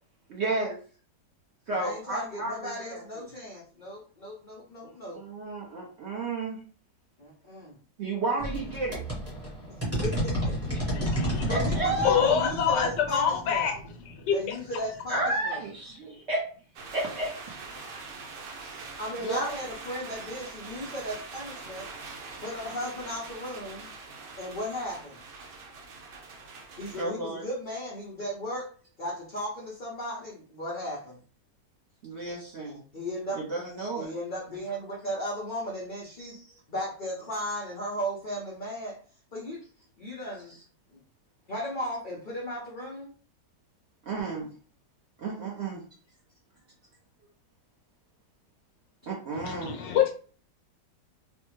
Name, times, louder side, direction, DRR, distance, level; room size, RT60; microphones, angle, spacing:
voice 1, 0.3-0.8 1.7-3.0 4.8-6.6 8.0-9.0 10.7-10.8 11.1-12.2 15.1-16.4 16.9-17.3 18.6-19.5 27.0-27.4 32.0-32.8 33.3-34.1 36.2-36.4 44.0-44.5 45.2-45.8 49.1-49.7, right 2 dB, 60° right, -3 dB, 0.7 m, -32 dB
voice 2, 1.7-5.2 7.2-7.8 10.0-10.5 11.5-13.7 14.3-15.6 19.0-21.9 22.4-23.9 24.4-25.2 26.8-28.7 29.0-31.2 32.9-33.6 34.0-36.4 36.7-39.0 39.3-39.6 40.0-40.5 40.9-41.0 41.5-43.1, equal, 60° left, -4 dB, 0.5 m, -36 dB
sound 1, 8.4-14.8, right 1 dB, 10° right, 0.8 m, -32 dB
voice 3, 10.9-11.7 12.0-13.7 14.1-14.5 49.3-50.1, left 8 dB, 80° left, 3 dB, 1.3 m, -26 dB
sound 2, 16.8-27.0, right 4 dB, 85° right, 1.4 m, -43 dB
3.2 x 2.1 x 3.0 m, 0.41 s
omnidirectional pair, 1.9 m